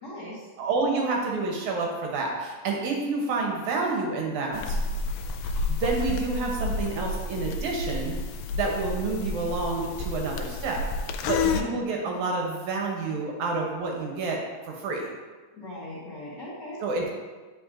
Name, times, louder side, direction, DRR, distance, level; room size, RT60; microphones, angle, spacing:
voice 1, 0.0-0.4 11.4-11.7 15.5-16.8, left 1 dB, 45° left, -9 dB, 1.4 m, -39 dB
voice 2, 0.6-4.8 5.4-8.2 8.5-10.8 11.2-14.4 14.6-15.1 16.8-17.1, right 3 dB, 70° right, 0 dB, 2.1 m, -29 dB
sound 1, 4.5-11.6, left 3 dB, 80° left, 2.0 m, -30 dB
9.0 x 5.3 x 2.5 m, 1.3 s
omnidirectional pair, 3.8 m